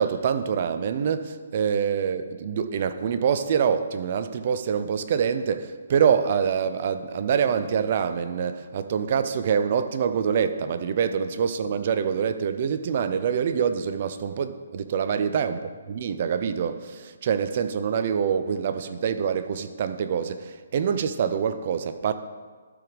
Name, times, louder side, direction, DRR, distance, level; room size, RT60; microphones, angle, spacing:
voice 1, 0.0-22.1, right 7 dB, 35° right, 11 dB, 0.5 m, -25 dB
12.5 x 4.8 x 5.2 m, 1.5 s
hypercardioid pair, 170°, 0 cm